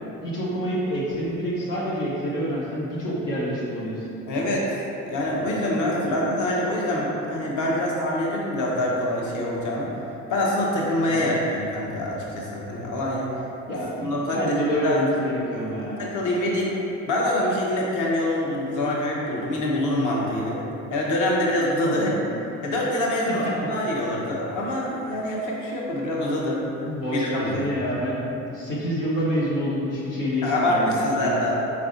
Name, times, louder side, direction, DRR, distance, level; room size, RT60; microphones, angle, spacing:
voice 1, 0.2-4.1 6.0-6.2 11.1-11.3 13.7-16.1 21.8-22.2 23.3-23.4 26.8-31.5, equal, 75° left, -7 dB, 0.8 m, -27 dB
voice 2, 4.3-4.7 5.1-9.9 10.3-13.3 14.0-14.5 14.8-15.0 16.0-16.7 17.1-20.6 20.9-22.1 22.6-26.6 27.1-27.5 30.4-31.6, left 1 dB, 50° left, -3 dB, 0.9 m, -25 dB
4.6 x 4.2 x 2.5 m, 2.8 s
figure-of-eight pair, 50°, 38 cm